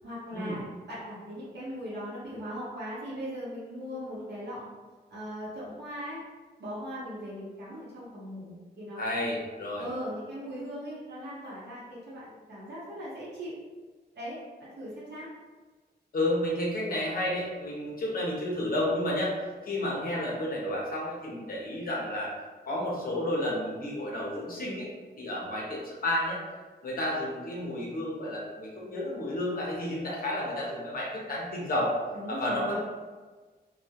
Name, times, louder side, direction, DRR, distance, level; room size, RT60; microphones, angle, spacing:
voice 1, 0.0-4.6 5.1-6.2 6.6-9.0 9.8-13.5 14.2-15.3 32.1-32.8, equal, 85° right, -9 dB, 0.8 m, -39 dB
voice 2, 9.0-9.9 16.1-19.3 19.6-22.3 22.7-24.9 25.2-26.4 26.8-31.9 32.3-32.8, left 1 dB, 55° left, -4 dB, 0.6 m, -31 dB
2.2 x 2.1 x 2.7 m, 1.3 s
wide cardioid pair, 145°, 17 cm